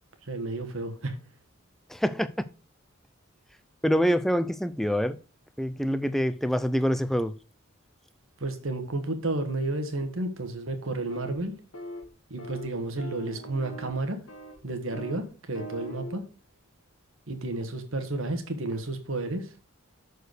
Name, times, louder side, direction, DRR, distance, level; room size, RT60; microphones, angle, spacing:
voice 1, 0.3-1.2 8.4-11.5 12.3-14.2 14.6-16.2 17.3-19.5, right 2 dB, 75° right, 1.5 m, -31 dB
voice 2, 1.9-2.3 3.8-5.2 5.6-7.3, equal, ahead, 0.4 m, -25 dB
sound 1, 11.1-11.4 11.7-12.1 12.4-12.7 13.0-14.0 14.3-14.6 14.9-15.2 15.5-16.2, right 1 dB, 85° left, 1.6 m, -41 dB
6.8 x 4.8 x 6.3 m
head